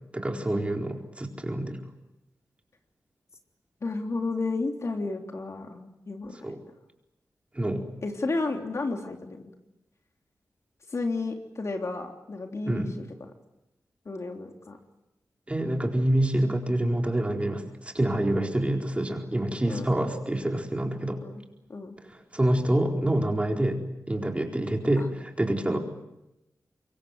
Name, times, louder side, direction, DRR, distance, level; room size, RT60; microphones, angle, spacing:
voice 1, 0.1-1.8 6.4-6.6 7.5-7.9 12.7-12.9 15.5-21.2 22.1-23.8 24.1-25.8, right 1 dB, 20° right, 2 dB, 4.3 m, -27 dB
voice 2, 3.8-6.4 8.0-9.5 10.9-13.3 14.0-14.8 19.7-20.0 21.0-21.4 21.7-22.0 25.0-25.1 25.7-25.8, left 3 dB, 50° left, 3 dB, 3.4 m, -32 dB
25.5 x 23.0 x 8.0 m, 0.91 s
wide cardioid pair, 85°, 6 cm